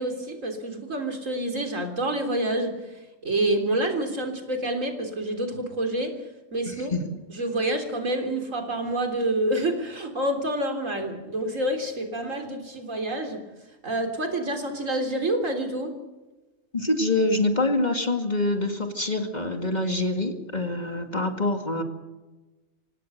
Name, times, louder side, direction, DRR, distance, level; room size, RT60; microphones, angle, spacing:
voice 1, 0.0-2.7 3.2-6.1 6.5-6.9 7.3-13.4 13.8-15.9, right 1 dB, 80° right, 4 dB, 3.9 m, -27 dB
voice 2, 6.6-7.2 16.7-21.8, left 2 dB, 35° left, 5 dB, 2.3 m, -25 dB
27.0 x 18.0 x 6.7 m, 1.1 s
omnidirectional pair, 1.3 m